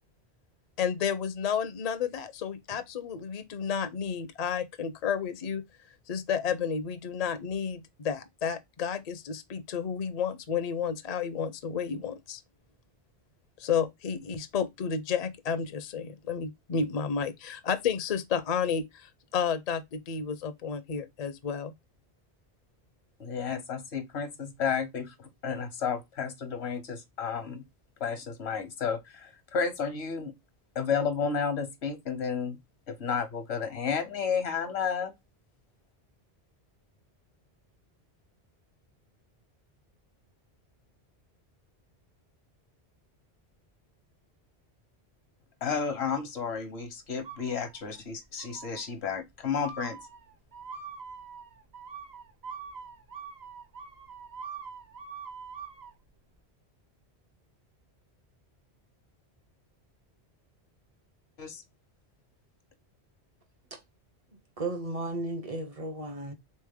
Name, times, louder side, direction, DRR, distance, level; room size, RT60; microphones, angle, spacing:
voice 1, 0.8-5.6 6.1-12.4 13.6-21.7, left 7 dB, 50° left, 0.5 m, -31 dB
voice 2, 23.2-27.6 28.0-30.3 30.7-32.6 32.9-35.1 45.6-50.0 61.4-61.6, left 6 dB, 75° left, 1.1 m, -32 dB
sound 1, 47.2-48.0 48.4-48.9 49.6-55.9, right 6 dB, 70° right, 1.3 m, -44 dB
voice 3, 64.6-66.3, right 2 dB, 40° right, 0.6 m, -34 dB
3.5 x 3.2 x 3.4 m
omnidirectional pair, 1.1 m